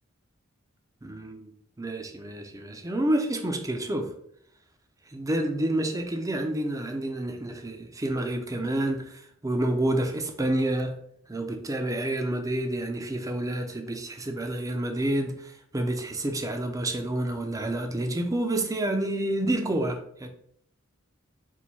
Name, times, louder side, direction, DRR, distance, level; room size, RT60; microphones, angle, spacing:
voice 1, 1.0-1.5 1.8-4.1 5.1-10.9 11.3-20.3, right 1 dB, 15° right, 5 dB, 0.5 m, -29 dB
4.5 x 2.1 x 4.1 m, 0.67 s
head